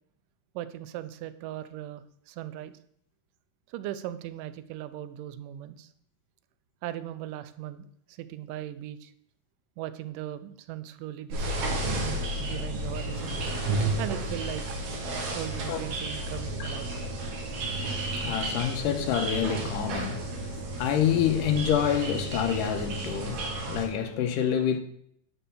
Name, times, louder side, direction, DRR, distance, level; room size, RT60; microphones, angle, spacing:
voice 1, 0.6-2.7 3.7-5.9 6.8-9.1 9.8-11.9 12.4-13.4 14.0-14.8 15.3-16.9, right 12 dB, 85° right, 2.2 m, -38 dB
sound 1, 11.3-23.9, right 2 dB, 60° right, 2.8 m, -32 dB
voice 2, 18.2-24.8, left 9 dB, 80° left, 2.4 m, -27 dB
10.0 x 4.5 x 6.8 m
omnidirectional pair, 3.8 m